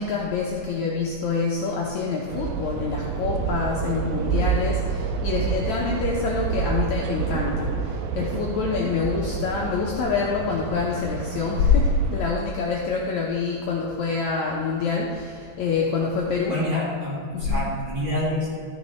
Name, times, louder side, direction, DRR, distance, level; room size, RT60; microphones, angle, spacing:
voice 1, 0.0-16.6 17.3-17.6, left 4 dB, 75° left, -2 dB, 1.7 m, -26 dB
sound 1, 2.3-12.3, right 6 dB, 80° right, 2.3 m, -28 dB
voice 2, 16.5-18.6, left 1 dB, 40° right, -6 dB, 2.0 m, -27 dB
13.5 x 6.1 x 4.4 m, 2.2 s
omnidirectional pair, 4.3 m